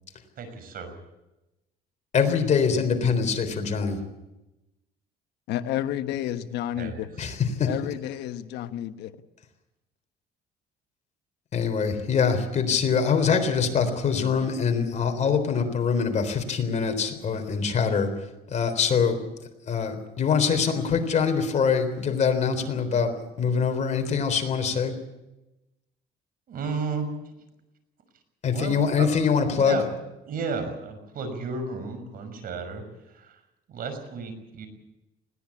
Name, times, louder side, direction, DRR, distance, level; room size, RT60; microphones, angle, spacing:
voice 1, 0.4-0.9 6.8-7.0 26.5-27.1 28.5-29.1 29.4-29.8 30.3-32.8 33.1-33.4 33.7-34.7, right 5 dB, 60° right, 8 dB, 6.0 m, -33 dB
voice 2, 2.1-4.0 7.2-7.7 11.5-18.2 18.5-19.2 19.7-24.9 28.4-29.8, left 6 dB, 45° left, 6 dB, 3.8 m, -24 dB
voice 3, 5.5-7.1 7.6-9.1, left 12 dB, 80° left, 10 dB, 1.2 m, -30 dB
20.5 x 17.5 x 8.5 m, 0.97 s
cardioid pair, 110°, 17 cm